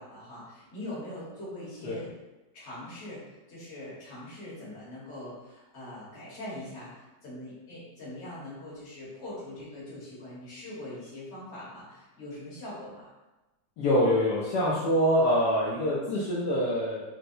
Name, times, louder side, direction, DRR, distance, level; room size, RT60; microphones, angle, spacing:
voice 1, 0.0-2.1 2.5-13.1, left 1 dB, 45° left, -8 dB, 1.3 m, -42 dB
voice 2, 13.8-17.0, equal, 70° left, -7 dB, 1.2 m, -25 dB
4.2 x 2.1 x 2.6 m, 1.1 s
omnidirectional pair, 1.9 m